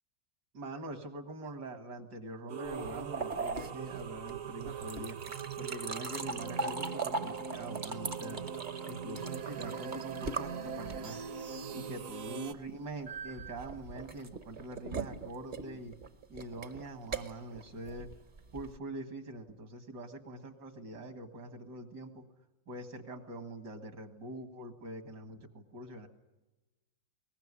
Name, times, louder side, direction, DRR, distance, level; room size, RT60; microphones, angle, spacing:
voice 1, 0.5-8.4 8.8-11.2 11.7-16.0 16.3-18.1 18.5-22.2 22.7-26.1, right 2 dB, 70° right, 7 dB, 2.5 m, -44 dB
sound 1, 2.5-12.5, right 7 dB, 55° right, 1.3 m, -41 dB
sound 2, 2.7-11.3 13.1-18.8, right 3 dB, 35° right, 0.9 m, -40 dB
22.5 x 19.5 x 9.8 m, 1.1 s
omnidirectional pair, 1.9 m